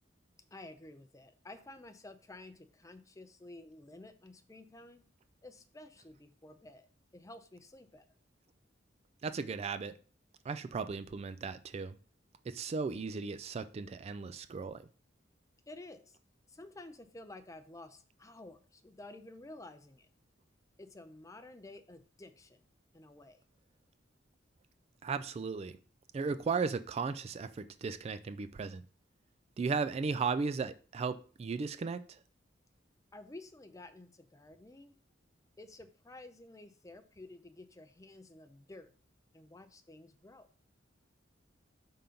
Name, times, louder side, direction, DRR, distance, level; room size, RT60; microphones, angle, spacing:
voice 1, 0.5-5.0 5.4-8.1 15.7-16.2 16.5-20.1 20.8-22.7 22.9-23.4 33.1-35.0 35.6-38.9 39.3-40.5, left 2 dB, 15° left, 0.5 m, -52 dB
voice 2, 9.2-9.9 10.4-11.9 12.5-14.8 25.0-25.8 26.1-28.8 29.6-32.2, right 5 dB, 35° right, 0.3 m, -36 dB
5.3 x 3.8 x 5.7 m
head